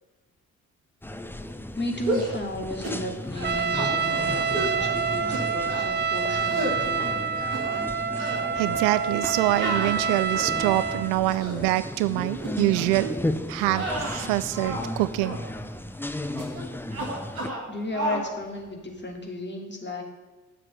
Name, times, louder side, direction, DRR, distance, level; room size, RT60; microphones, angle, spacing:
sound 1, 1.0-17.5, left 1 dB, 5° left, 0.8 m, -35 dB
voice 1, 1.7-7.1 17.7-20.0, left 2 dB, 25° left, 1 dB, 2.9 m, -34 dB
sound 2, 2.0-2.4 2.8-3.0 3.3-3.9 4.5-4.8 5.3-5.9 6.4-6.8 7.3-7.9 8.2-8.4 9.6-10.6 11.2-11.6 12.4-12.6 12.9-13.2 13.7-14.9 15.2-15.4 16.4-16.6 16.9-17.7 17.9-18.3, right 1 dB, 85° right, 1.5 m, -32 dB
Trumpet, 3.4-11.1, right 6 dB, 25° right, 0.6 m, -27 dB
voice 2, 8.2-13.2 13.5-15.4, right 17 dB, 65° right, 14 dB, 0.6 m, -25 dB
9.6 x 7.6 x 7.8 m, 1.2 s
figure-of-eight pair, 40°, 41 cm